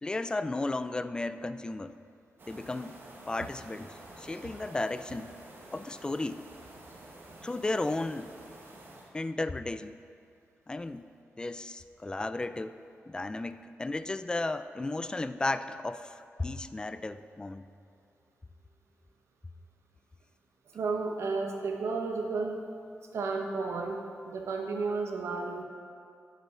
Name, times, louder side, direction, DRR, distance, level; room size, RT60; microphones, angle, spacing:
voice 1, 0.0-2.0 2.5-3.0 3.3-5.3 5.7-6.5 7.4-8.3 9.1-10.0 10.7-11.1 11.4-12.8 13.1-17.6, left 2 dB, 20° left, 12 dB, 0.3 m, -34 dB
sound 1, 2.4-9.1, right 2 dB, 50° right, 1.2 m, -50 dB
voice 2, 20.7-22.6 23.1-25.6, right 4 dB, 80° right, 3 dB, 0.9 m, -32 dB
11.5 x 5.7 x 3.7 m, 2.4 s
cardioid pair, 90°, 5 cm